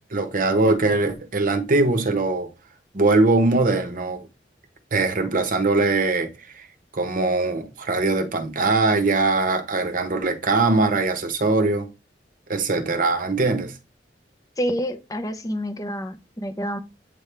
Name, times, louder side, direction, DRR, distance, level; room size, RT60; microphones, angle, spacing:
voice 1, 0.1-2.5 2.9-4.3 4.9-6.3 6.6-6.7 6.9-11.9 12.5-13.7, right 3 dB, 50° right, 1.0 m, -21 dB
voice 2, 14.6-16.8, equal, 20° left, 0.8 m, -28 dB
8.4 x 3.5 x 3.3 m
head